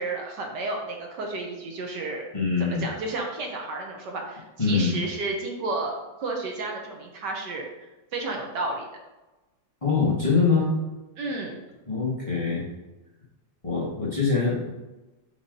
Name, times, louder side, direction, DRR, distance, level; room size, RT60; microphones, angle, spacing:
voice 1, 0.0-2.3 2.7-7.6 8.1-8.9 11.2-11.6, right 2 dB, 65° right, 1 dB, 1.5 m, -32 dB
voice 2, 2.3-2.8 4.6-5.0 9.8-10.7 11.9-12.6 13.6-14.7, left 4 dB, 20° left, -6 dB, 1.5 m, -23 dB
5.2 x 4.6 x 5.3 m, 1.1 s
omnidirectional pair, 2.1 m